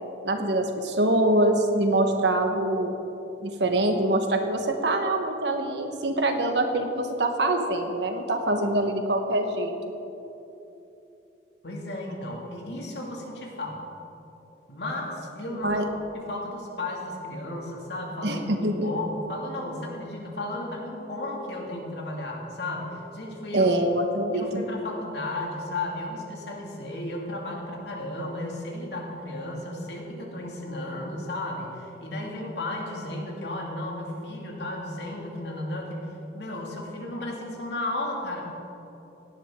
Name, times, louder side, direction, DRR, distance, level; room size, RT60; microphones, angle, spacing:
voice 1, 0.2-2.9 3.4-9.7 15.6-15.9 18.2-18.9 23.5-24.6, right 1 dB, 75° right, 4 dB, 1.3 m, -24 dB
voice 2, 11.6-13.8 14.7-15.9 16.1-23.7 24.3-36.1 36.3-38.4, left 1 dB, 70° left, -1 dB, 2.3 m, -34 dB
17.0 x 11.0 x 3.8 m, 3.0 s
head